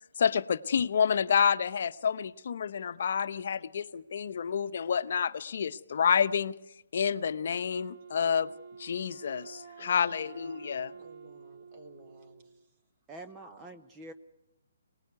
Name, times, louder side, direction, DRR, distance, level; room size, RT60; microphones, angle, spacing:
voice 1, 0.2-6.6 6.9-8.5 8.8-10.9, left 7 dB, 55° left, 13 dB, 0.9 m, -29 dB
Wind instrument woodwind instrument, 7.7-12.7, right 5 dB, 50° right, 1.1 m, -49 dB
voice 2, 9.8-10.6 11.0-12.8 13.4-13.6, right 2 dB, 30° right, 5 dB, 4.0 m, -55 dB
voice 3, 13.1-14.1, right 2 dB, 15° right, 6 dB, 0.9 m, -46 dB
24.0 x 19.5 x 9.5 m, 0.91 s
hypercardioid pair, 145°, 0 cm